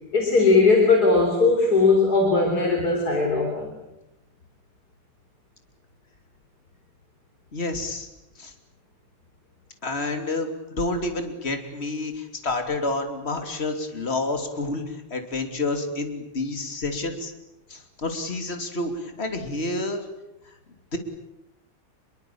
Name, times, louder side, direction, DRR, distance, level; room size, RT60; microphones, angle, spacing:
voice 1, 0.1-3.7, left 3 dB, 50° left, 2 dB, 4.3 m, -19 dB
voice 2, 7.5-8.1 8.4-8.5 9.8-17.3 17.7-20.0 20.9-21.0, left 2 dB, 30° left, 6 dB, 3.3 m, -29 dB
27.0 x 23.0 x 8.7 m, 0.89 s
omnidirectional pair, 2.2 m